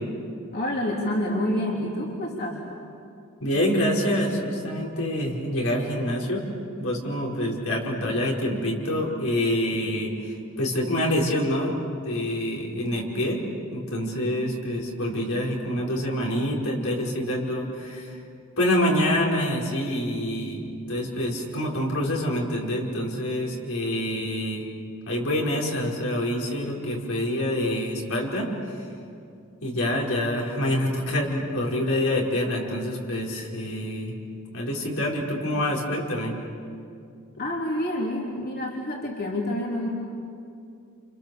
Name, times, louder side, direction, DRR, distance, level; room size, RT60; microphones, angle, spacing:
voice 1, 0.5-2.6 37.4-39.9, left 1 dB, 50° left, -2 dB, 3.3 m, -28 dB
voice 2, 3.4-6.5 6.8-13.4 13.7-18.2 18.6-24.6 25.0-28.5 29.6-34.2 34.5-36.4, left 1 dB, 80° left, -2 dB, 5.1 m, -26 dB
29.0 x 28.5 x 7.0 m, 2.5 s
head